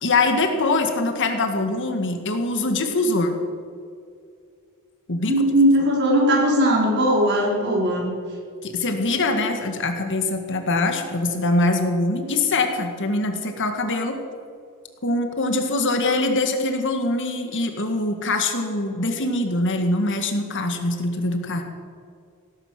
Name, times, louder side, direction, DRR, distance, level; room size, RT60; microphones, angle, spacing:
voice 1, 0.0-3.4 5.1-5.3 8.6-14.2 15.0-21.6, left 2 dB, 55° left, 5 dB, 1.9 m, -23 dB
voice 2, 5.3-8.1, equal, 50° right, -3 dB, 5.1 m, -19 dB
18.0 x 10.5 x 7.5 m, 2.3 s
head